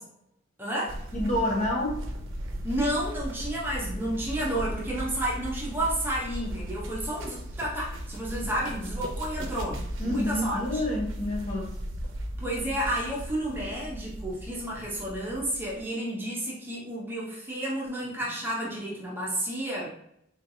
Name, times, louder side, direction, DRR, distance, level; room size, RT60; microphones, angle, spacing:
voice 1, 0.6-1.0 2.6-10.8 12.4-19.9, right 1 dB, 10° right, -5 dB, 0.7 m, -31 dB
sound 1, 0.9-15.8, equal, 80° right, 0.6 m, -37 dB
voice 2, 1.1-2.0 10.0-11.7, left 1 dB, 35° left, -3 dB, 1.0 m, -28 dB
3.9 x 3.1 x 2.7 m, 0.75 s
head